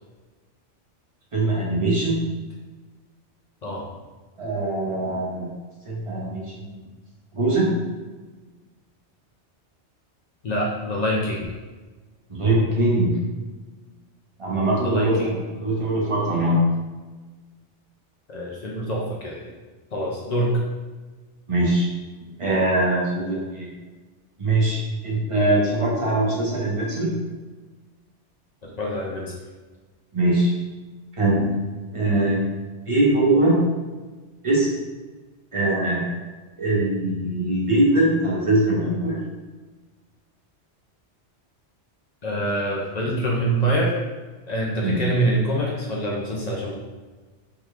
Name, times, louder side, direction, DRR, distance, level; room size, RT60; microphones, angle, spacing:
voice 1, 1.3-2.2 4.4-5.5 5.9-6.8 7.3-7.7 12.3-13.2 14.4-16.6 21.5-21.9 22.4-23.7 24.4-27.2 30.1-30.5 31.2-31.5 31.9-32.4 32.9-33.6 34.4-34.7 35.5-36.1 36.6-39.2 44.8-45.0, right 2 dB, 30° right, -5 dB, 0.7 m, -22 dB
voice 2, 10.4-11.5 14.8-15.1 18.3-19.5 19.9-20.5 28.6-29.3 42.2-43.9 44.5-46.7, right 1 dB, 50° left, -3 dB, 0.5 m, -25 dB
3.5 x 2.3 x 3.0 m, 1.3 s
omnidirectional pair, 1.2 m